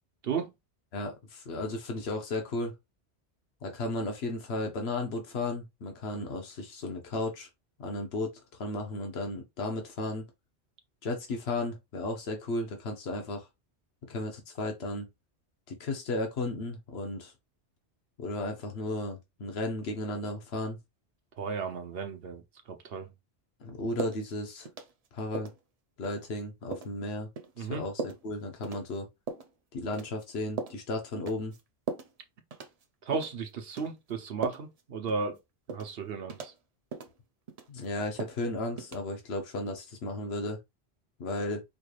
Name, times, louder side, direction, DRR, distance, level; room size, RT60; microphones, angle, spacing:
voice 1, 0.2-0.5 21.4-23.1 27.6-27.9 33.0-35.4 35.7-36.5, right 5 dB, 65° right, 0.9 m, -34 dB
voice 2, 0.9-2.7 3.6-7.5 7.8-10.3 11.0-13.5 14.1-15.1 15.8-17.3 18.2-20.8 23.6-24.7 25.1-25.5 26.0-27.3 27.6-29.1 29.7-31.5 37.7-40.6 41.2-41.6, left 2 dB, 70° left, 1.2 m, -34 dB
sound 1, 24.0-24.2 24.7-25.1 25.3-25.6 26.0-26.2 26.7-26.9 27.4-27.5 28.0-28.2 28.6-28.8 29.3-29.5 29.9-30.3 30.6-30.8 31.3-31.6 31.9-32.1 32.5-32.8 33.1-33.4 33.8-33.9 34.4-34.8 35.1-35.2 35.7-35.9 36.3-36.6 36.9-37.1 37.5-37.9 38.2-38.4 38.8-39.0, right 4 dB, 45° right, 0.6 m, -38 dB
5.0 x 3.2 x 2.4 m
omnidirectional pair, 1.1 m